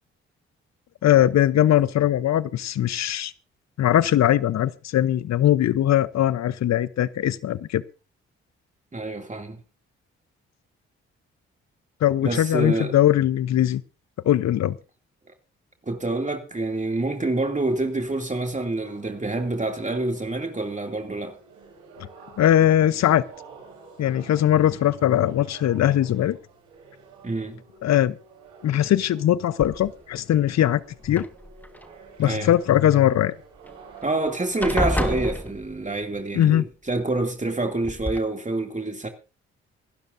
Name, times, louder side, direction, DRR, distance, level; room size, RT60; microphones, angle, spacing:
voice 1, 1.0-3.3 3.8-7.8 12.0-13.8 14.2-14.8 22.0-22.1 22.4-23.2 24.0-26.4 27.8-28.2 28.6-31.2 32.2-33.3 36.3-36.6, left 12 dB, 60° left, 0.8 m, -20 dB
voice 2, 8.9-9.6 12.2-12.9 15.9-21.4 27.2-27.6 32.2-32.5 34.0-39.1, right 2 dB, 25° right, 2.6 m, -27 dB
sound 1, 16.5-35.4, right 5 dB, 85° right, 3.9 m, -49 dB
sound 2, 29.6-30.2 31.0-31.9 33.7-33.8 34.1-34.3 34.6-36.0 37.2-37.3 37.8-38.2, left 1 dB, 5° left, 1.4 m, -29 dB
25.5 x 12.0 x 2.6 m
hypercardioid pair, 45°, 30 cm